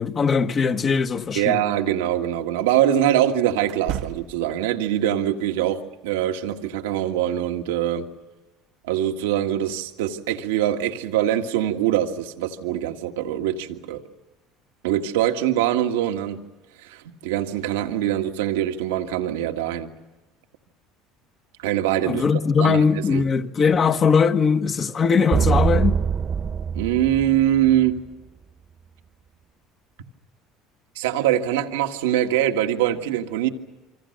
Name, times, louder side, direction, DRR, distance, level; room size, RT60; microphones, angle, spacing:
voice 1, 0.0-1.6 22.1-26.0, left 6 dB, 35° left, 1.5 m, -20 dB
voice 2, 1.3-8.1 8.8-14.0 14.8-16.4 16.8-19.9 21.6-22.2 22.6-23.2 26.7-28.0 30.9-33.5, right 11 dB, 90° right, 1.7 m, -23 dB
sound 1, 1.4-1.6 3.6-4.6, right 12 dB, 65° right, 1.0 m, -33 dB
sound 2, 25.3-28.0, right 6 dB, 35° right, 1.2 m, -23 dB
27.5 x 25.0 x 6.6 m
supercardioid pair, 90°, 0 cm